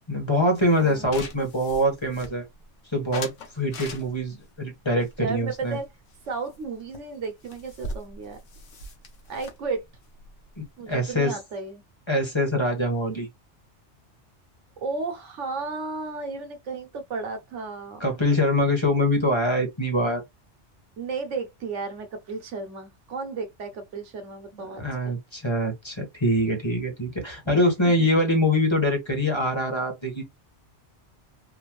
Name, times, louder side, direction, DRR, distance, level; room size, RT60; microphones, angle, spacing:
voice 1, 0.1-2.4 2.9-5.8 10.6-11.4 12.1-13.3 18.0-20.2 24.8-30.2, left 1 dB, 25° left, 1.5 m, -24 dB
sound 1, 0.6-2.7 3.1-4.4 5.0-6.2 6.5-6.7 6.9-7.0 7.2-11.1, left 2 dB, 85° left, 1.3 m, -41 dB
voice 2, 5.2-5.9 6.3-8.4 9.3-9.8 10.8-11.8 14.8-18.0 21.0-25.2 27.5-27.6 28.0-28.1, right 4 dB, 80° right, 1.3 m, -33 dB
4.1 x 2.5 x 3.1 m
omnidirectional pair, 1.2 m